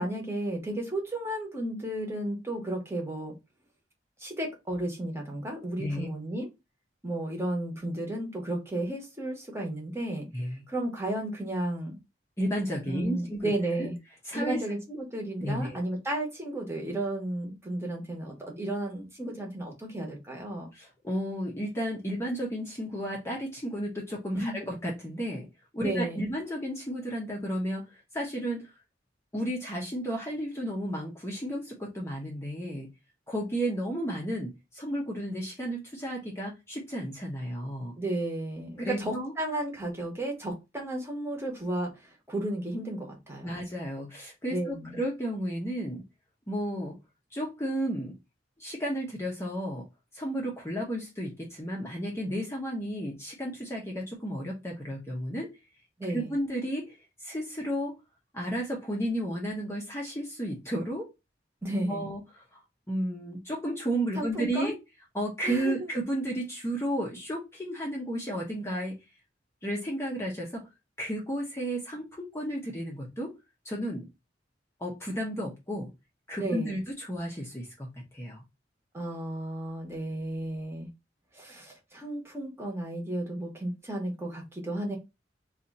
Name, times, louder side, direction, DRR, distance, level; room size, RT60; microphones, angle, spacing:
voice 1, 0.0-3.3 4.2-6.5 7.0-10.3 10.7-12.0 12.8-14.0 14.3-20.7 24.3-24.6 25.8-26.3 38.0-43.6 44.5-45.0 56.0-56.3 61.6-62.1 64.2-64.7 65.4-65.9 76.4-76.8 78.9-80.9 81.3-85.0, right 1 dB, 15° right, -1 dB, 1.0 m, -33 dB
voice 2, 10.3-10.6 12.4-13.5 13.8-13.9 14.2-14.6 15.4-15.8 20.7-25.5 25.7-28.7 29.3-32.9 33.3-37.9 38.8-39.3 43.4-46.0 46.5-47.0 47.3-48.1 48.6-49.8 50.1-55.5 56.1-57.9 58.3-61.1 61.9-62.2 62.5-62.6 62.9-64.7 65.1-68.9 69.6-70.7 71.0-73.3 73.6-74.1 74.8-75.9 76.3-78.4, equal, 15° left, -2 dB, 0.7 m, -33 dB
2.8 x 2.4 x 4.0 m, 0.24 s
head